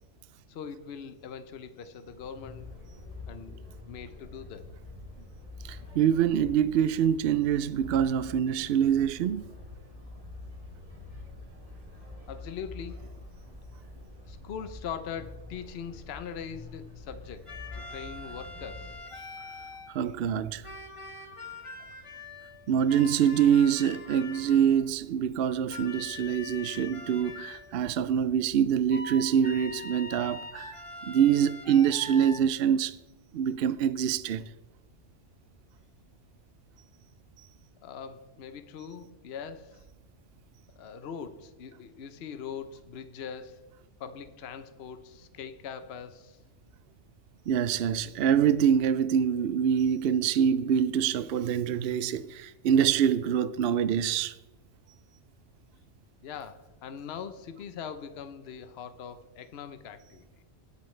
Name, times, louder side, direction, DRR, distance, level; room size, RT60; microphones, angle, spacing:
voice 1, 0.5-2.7 3.3-4.7 12.3-13.0 14.2-19.0 21.8-21.9 37.8-39.8 40.8-43.6 44.0-46.4 56.2-60.2, left 7 dB, 60° left, 1.0 m, -41 dB
sound 1, 2.0-18.9, left 3 dB, 30° right, 3.8 m, -46 dB
voice 2, 5.6-9.5 19.9-20.6 22.7-30.8 31.0-33.0 33.3-34.4 47.5-54.3, right 8 dB, 65° right, 0.7 m, -25 dB
sound 2, 17.5-20.1 20.6-24.9 25.7-27.8 28.9-32.4, left 3 dB, 30° left, 1.1 m, -43 dB
19.5 x 8.5 x 3.2 m
omnidirectional pair, 1.2 m